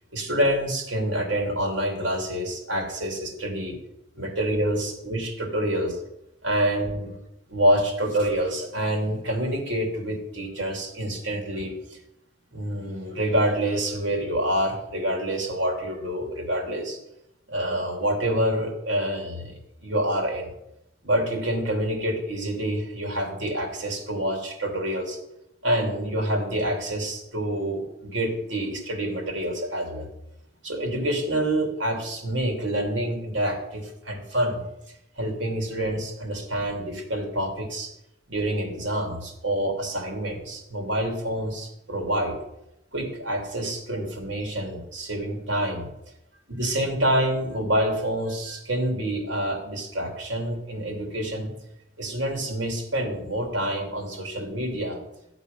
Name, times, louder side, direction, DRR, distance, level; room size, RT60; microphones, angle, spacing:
voice 1, 0.1-3.8 4.1-6.0 6.4-7.1 7.5-12.0 12.5-17.0 17.5-20.5 21.0-25.2 25.6-30.1 30.6-34.7 35.2-37.9 38.3-42.4 42.9-45.9 46.5-51.5 52.0-55.0, right 1 dB, 75° right, 2 dB, 3.0 m, -27 dB
13.5 x 8.1 x 5.5 m, 0.86 s
head